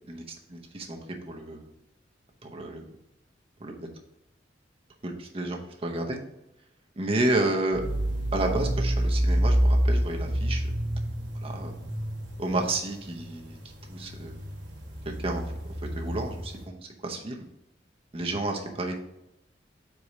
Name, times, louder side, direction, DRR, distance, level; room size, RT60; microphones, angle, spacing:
voice 1, 0.5-1.0 1.3-1.6 2.4-2.8 3.6-3.9 5.0-6.2 7.0-7.8 8.3-10.6 11.4-11.7 12.4-13.6 13.9-14.3 15.2-15.4 16.0-16.8 17.0-17.4 18.1-19.0, right 2 dB, 35° right, 2 dB, 0.8 m, -30 dB
sound 1, 7.7-16.7, equal, 70° right, 1.3 m, -28 dB
4.8 x 4.2 x 4.9 m, 0.88 s
head